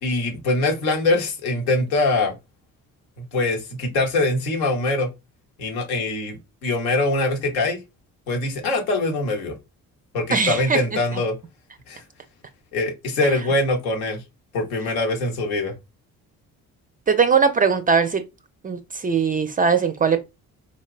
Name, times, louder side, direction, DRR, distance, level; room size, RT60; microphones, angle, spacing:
voice 1, 0.0-2.3 3.2-5.1 5.6-7.8 8.3-9.6 10.1-11.4 11.9-12.0 12.7-14.2 14.5-15.7, left 2 dB, 75° left, 0.8 m, -23 dB
voice 2, 10.3-10.8 11.1-11.2 13.2-13.3 17.1-18.2 18.6-20.2, right 5 dB, 20° right, 0.3 m, -20 dB
3.8 x 2.1 x 2.3 m
figure-of-eight pair, 45°, 43 cm